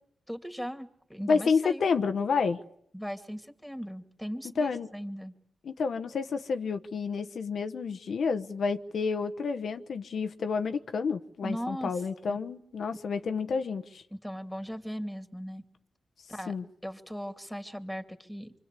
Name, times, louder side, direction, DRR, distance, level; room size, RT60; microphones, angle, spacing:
voice 1, 0.3-1.8 2.9-5.3 11.4-11.9 12.3-12.4 14.1-15.6 16.3-16.5 16.8-18.5, equal, ahead, 2.6 m, -38 dB
voice 2, 1.3-2.6 4.6-4.9 5.6-14.0 16.5-16.6, left 5 dB, 70° left, 1.1 m, -29 dB
25.0 x 24.5 x 8.3 m
cardioid pair, 65°, 0 cm